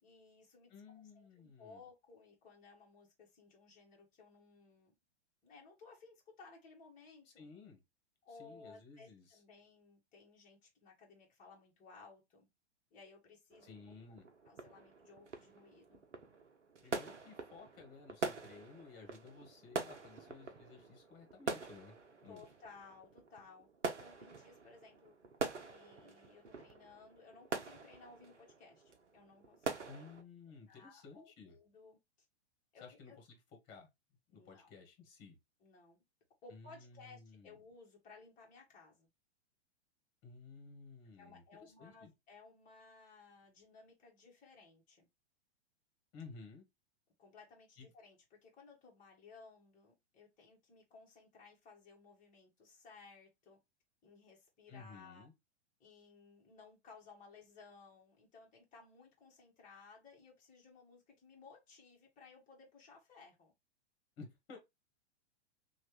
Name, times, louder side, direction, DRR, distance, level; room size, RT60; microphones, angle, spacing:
voice 1, 0.0-4.9 5.4-7.5 8.2-12.5 12.9-14.2 14.4-16.0 19.3-19.5 22.3-23.7 24.0-25.1 25.6-30.0 30.5-32.0 32.7-33.2 34.3-34.7 35.6-36.0 36.4-39.1 41.2-45.1 47.2-53.6 54.0-55.3 55.8-63.5, left 4 dB, 25° left, 1.4 m, -59 dB
voice 2, 0.7-1.8 7.4-7.8 8.4-9.4 13.6-14.3 16.8-21.9 22.2-22.4 29.8-31.6 32.8-33.4 33.6-33.9 34.3-35.4 36.5-37.6 40.2-42.1 46.1-46.6 47.8-47.9 54.7-55.3 64.2-64.6, left 4 dB, 40° left, 1.5 m, -55 dB
sound 1, 13.5-30.2, right 4 dB, 85° right, 0.7 m, -45 dB
3.1 x 2.4 x 3.1 m
figure-of-eight pair, 105°, 34 cm